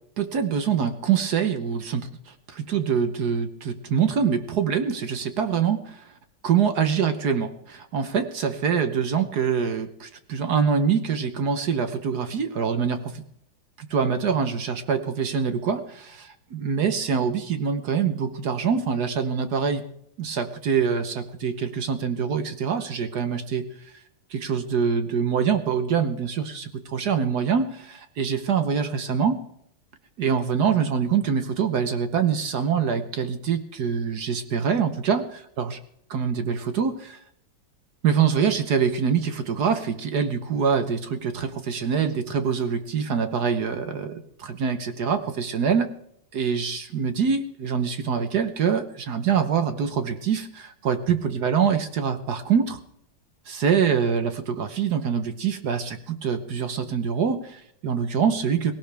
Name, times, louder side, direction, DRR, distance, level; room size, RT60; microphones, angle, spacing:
voice 1, 0.2-6.1 6.4-13.2 13.8-19.8 20.2-23.7 24.3-29.4 30.2-35.2 35.6-35.8 36.1-37.2 38.0-44.1 44.4-45.9 46.3-52.8 53.5-58.7, right 6 dB, 55° right, 9 dB, 1.3 m, -25 dB
18.0 x 17.5 x 3.4 m, 0.74 s
omnidirectional pair, 2.4 m